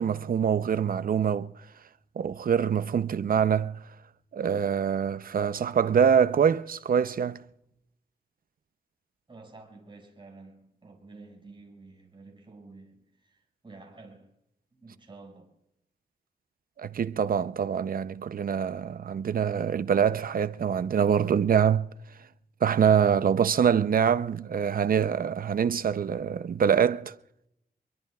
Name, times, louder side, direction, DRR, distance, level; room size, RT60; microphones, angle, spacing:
voice 1, 0.0-1.5 2.2-3.8 4.3-7.4 16.8-21.9 22.6-27.1, right 7 dB, 55° right, 0.6 m, -24 dB
voice 2, 9.3-14.3 14.7-15.5, right 3 dB, 30° right, 6.0 m, -50 dB
25.5 x 23.0 x 2.4 m
wide cardioid pair, 100°, 17 cm